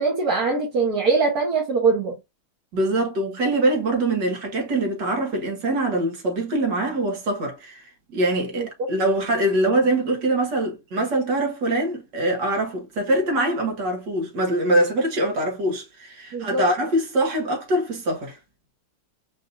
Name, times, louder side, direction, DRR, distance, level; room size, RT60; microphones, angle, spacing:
voice 1, 0.0-2.1 8.5-8.7 16.3-16.7, right 4 dB, 60° right, 1.7 m, -22 dB
voice 2, 2.7-18.4, right 1 dB, 75° right, 2.0 m, -23 dB
5.1 x 2.7 x 2.6 m
omnidirectional pair, 1.9 m